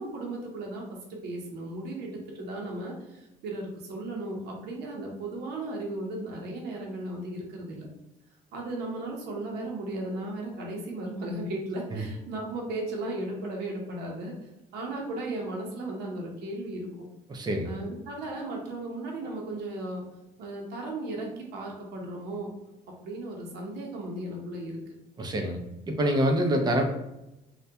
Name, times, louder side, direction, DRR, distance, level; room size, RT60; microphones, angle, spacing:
voice 1, 0.0-7.9 8.5-14.3 14.7-17.1 17.6-20.0 20.4-22.5 23.0-24.8, right 2 dB, 75° right, -1 dB, 0.6 m, -36 dB
voice 2, 17.3-17.7 25.2-25.6 25.9-26.8, right 1 dB, 25° right, 4 dB, 0.4 m, -26 dB
2.2 x 2.1 x 2.7 m, 0.90 s
cardioid pair, 110°, 17 cm